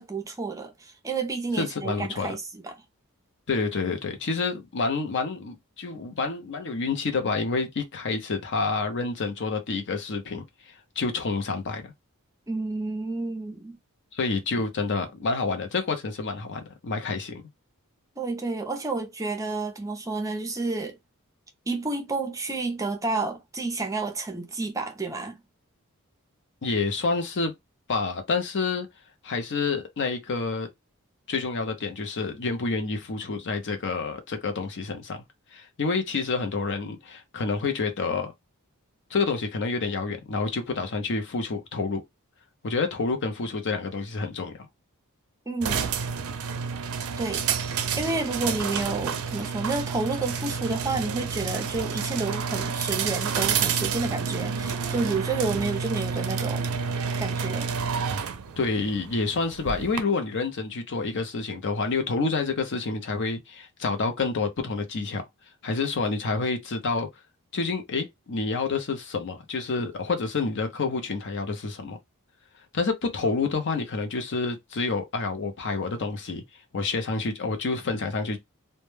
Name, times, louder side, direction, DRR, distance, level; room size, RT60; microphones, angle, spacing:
voice 1, 0.0-2.7 12.5-13.8 18.2-21.0 21.7-25.4 45.5-45.9 47.2-47.4 48.0-56.6 57.2-57.7, right 3 dB, 15° right, 0.5 m, -30 dB
voice 2, 1.6-2.3 3.5-11.8 14.1-17.4 26.6-27.5 27.9-28.9 29.2-30.7 31.3-35.2 35.5-38.3 39.1-42.0 42.6-44.5 58.6-65.2 65.6-67.1 67.5-72.0 72.7-76.4 76.7-78.4, left 4 dB, 55° left, 0.6 m, -28 dB
sound 1, 45.6-60.0, right 6 dB, 75° right, 0.4 m, -29 dB
2.1 x 2.1 x 3.1 m
head